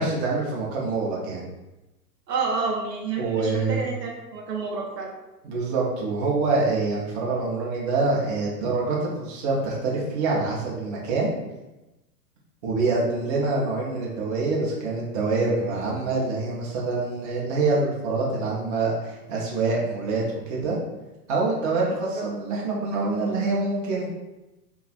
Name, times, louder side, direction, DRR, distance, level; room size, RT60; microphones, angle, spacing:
voice 1, 0.0-1.4 3.2-3.8 5.4-11.3 12.6-20.8 21.3-24.1, right 3 dB, 25° right, -4 dB, 0.4 m, -25 dB
voice 2, 2.3-5.1 22.1-22.2, right 4 dB, 80° right, -1 dB, 0.6 m, -29 dB
2.5 x 2.3 x 2.3 m, 1.0 s
hypercardioid pair, 110°, 49 cm